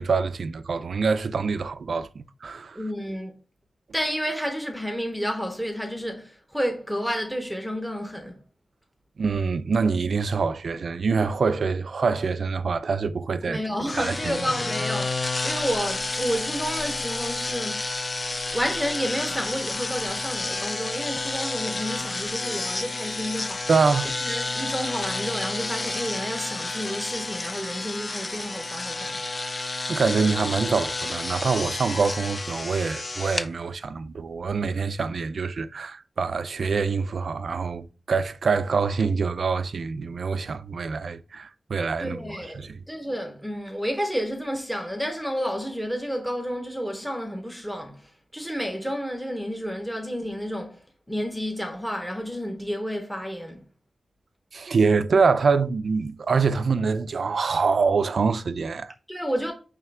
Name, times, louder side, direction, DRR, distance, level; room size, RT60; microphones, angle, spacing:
voice 1, 0.0-2.8 9.2-13.6 13.9-14.4 23.7-24.1 29.9-42.2 42.6-42.8 54.5-58.9, right 5 dB, 60° right, 0.5 m, -25 dB
voice 2, 2.7-3.3 3.9-8.4 13.5-17.9 18.5-23.7 24.2-29.2 42.0-50.8 51.1-53.6 59.1-59.5, equal, ahead, 0.9 m, -30 dB
sound 1, 13.9-33.5, left 3 dB, 30° left, 0.5 m, -30 dB
9.1 x 3.3 x 3.4 m
wide cardioid pair, 165°, 0 cm